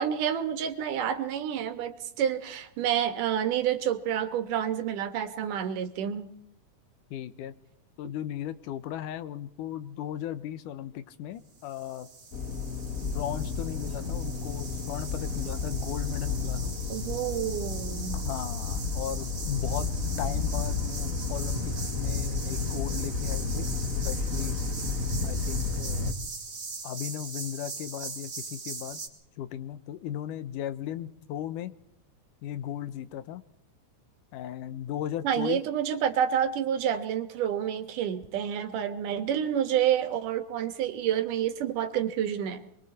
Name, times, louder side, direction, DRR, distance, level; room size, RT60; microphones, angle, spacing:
voice 1, 0.0-6.3 16.9-18.2 35.2-42.6, right 9 dB, 80° right, 9 dB, 3.0 m, -29 dB
voice 2, 7.1-7.5 8.0-12.1 13.0-16.8 18.1-19.9 20.2-24.6 25.2-26.1 26.8-29.0 29.4-31.7 32.4-33.4 34.3-35.6, left 11 dB, 80° left, 13 dB, 2.5 m, -36 dB
sound 1, 11.6-29.1, right 4 dB, 40° right, 3.7 m, -41 dB
sound 2, 12.3-26.1, left 4 dB, 50° left, 1.0 m, -32 dB
27.5 x 22.5 x 4.3 m, 0.73 s
omnidirectional pair, 3.6 m